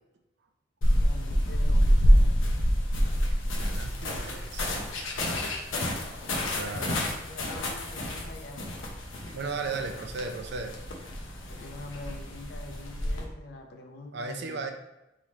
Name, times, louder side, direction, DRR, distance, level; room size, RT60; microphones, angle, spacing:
sound 1, 0.8-13.2, equal, 90° left, 0.8 m, -27 dB
voice 1, 1.0-2.4 6.6-7.0 7.3-8.9 11.5-14.7, left 2 dB, 60° left, 4 dB, 0.6 m, -44 dB
voice 2, 3.5-5.1 6.3-7.0 9.3-10.7 14.1-14.7, right 4 dB, 60° right, 5 dB, 0.5 m, -36 dB
3.8 x 3.1 x 4.2 m, 0.91 s
head